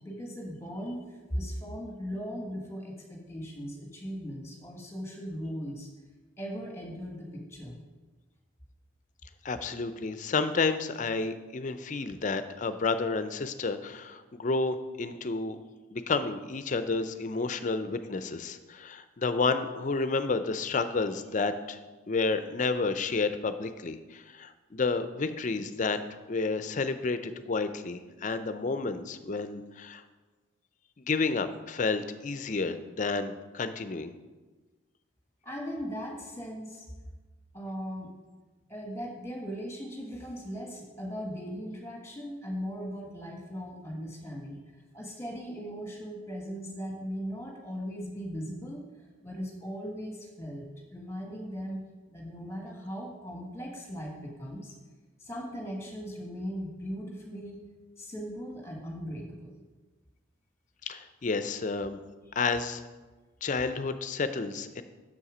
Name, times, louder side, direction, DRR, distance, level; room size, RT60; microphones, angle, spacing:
voice 1, 0.0-5.9 6.4-7.8 35.4-36.9 37.5-38.1 38.7-44.6 44.9-48.8 49.2-51.8 52.1-54.7 55.2-57.6 58.0-59.6, equal, 15° left, 0 dB, 1.4 m, -38 dB
voice 2, 9.4-15.6 15.9-21.8 22.1-26.0 26.3-30.0 31.0-34.1 60.9-62.0 62.4-62.8 63.4-64.8, left 4 dB, 40° left, 11 dB, 0.4 m, -30 dB
7.0 x 6.6 x 5.0 m, 1.3 s
head